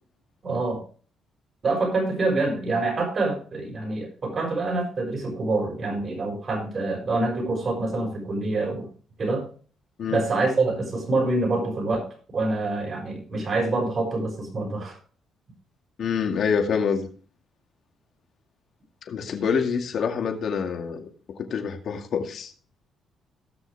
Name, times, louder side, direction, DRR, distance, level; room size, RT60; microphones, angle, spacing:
voice 1, 0.4-0.8 1.6-8.9 9.2-9.5 10.1-12.1 12.3-15.0, right 2 dB, 45° right, 2 dB, 6.1 m, -26 dB
voice 2, 16.0-17.1 19.1-21.1 21.4-22.5, left 6 dB, 65° left, 5 dB, 2.1 m, -26 dB
18.0 x 6.4 x 3.4 m, 0.40 s
cardioid pair, 90°, 0 cm